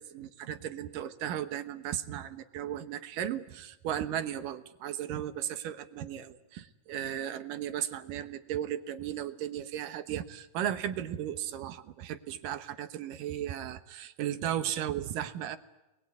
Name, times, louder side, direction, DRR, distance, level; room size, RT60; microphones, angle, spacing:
voice 1, 0.0-15.6, right 11 dB, 65° right, 11 dB, 2.4 m, -35 dB
28.5 x 21.5 x 9.5 m, 0.98 s
omnidirectional pair, 4.7 m